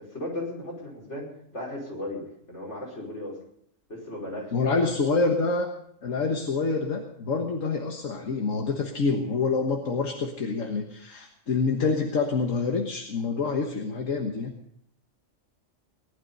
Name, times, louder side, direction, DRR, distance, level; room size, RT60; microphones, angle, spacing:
voice 1, 0.0-3.4 3.9-5.1, left 1 dB, 60° left, -3 dB, 5.6 m, -36 dB
voice 2, 4.5-5.7 6.0-14.6, left 4 dB, 80° left, 3 dB, 1.8 m, -27 dB
19.0 x 11.5 x 5.4 m, 0.71 s
omnidirectional pair, 1.3 m